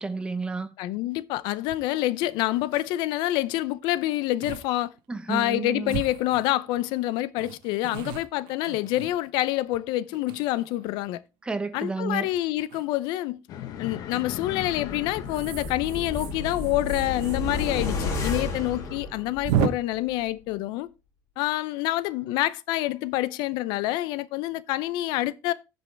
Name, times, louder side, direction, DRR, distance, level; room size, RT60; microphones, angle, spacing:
voice 1, 0.0-0.7 5.1-6.0 11.4-12.3, right 3 dB, 15° right, 0.9 m, -31 dB
voice 2, 0.8-4.9 5.3-11.2 11.7-13.4 13.8-20.9 21.4-25.5, left 16 dB, 75° left, 0.6 m, -27 dB
sound 1, 1.7-1.8 2.3-2.4 2.6-2.9 3.8-4.0 4.4-4.7 5.0-5.1 5.9-6.8 7.4-9.6 10.1-10.9 12.6-12.8 14.1-14.5 15.2-18.0 18.3-18.4 18.7-18.8 19.4-19.7, right 9 dB, 85° right, 0.9 m, -33 dB
sound 2, 13.5-19.0, left 10 dB, 60° left, 1.1 m, -40 dB
sound 3, 14.7-19.7 20.1-20.2, left 3 dB, 45° left, 2.6 m, -32 dB
15.0 x 5.4 x 3.3 m
cardioid pair, 135°, 8 cm